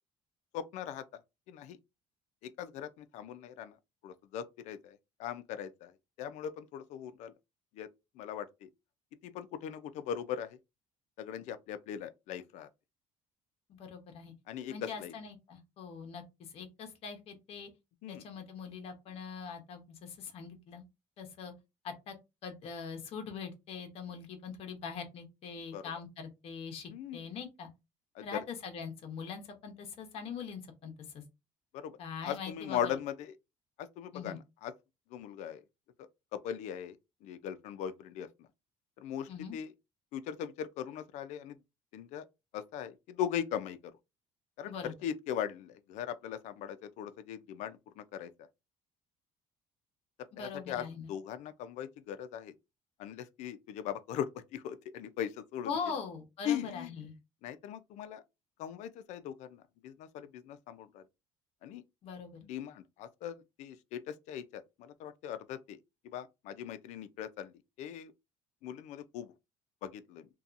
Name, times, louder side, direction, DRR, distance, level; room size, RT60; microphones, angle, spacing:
voice 1, 0.5-1.0 1.5-1.8 2.4-3.8 4.0-5.9 6.2-7.3 7.7-7.9 8.2-8.7 9.2-10.6 11.2-12.7 14.5-15.1 18.0-18.2 25.7-25.8 26.9-27.2 28.2-28.4 31.7-33.3 33.8-34.7 35.1-35.6 36.0-37.0 37.2-38.3 39.0-39.7 40.1-41.6 41.9-42.2 42.5-43.9 44.6-48.3 50.4-52.5 53.0-55.7 56.4-56.9 57.4-58.2 58.6-61.0 61.6-61.8 62.4-65.8 66.0-67.5 67.8-68.1 68.6-69.3 69.8-70.3, left 9 dB, 70° left, 0.4 m, -39 dB
voice 2, 13.7-14.3 14.7-17.7 18.1-20.8 21.2-21.5 21.8-22.1 22.4-27.7 28.2-31.2 32.0-33.0 34.1-34.4 39.3-39.6 44.7-44.9 50.3-51.1 55.6-57.1 62.0-62.4, left 6 dB, 55° left, 0.8 m, -42 dB
2.7 x 2.2 x 2.4 m
cardioid pair, 145°, 13 cm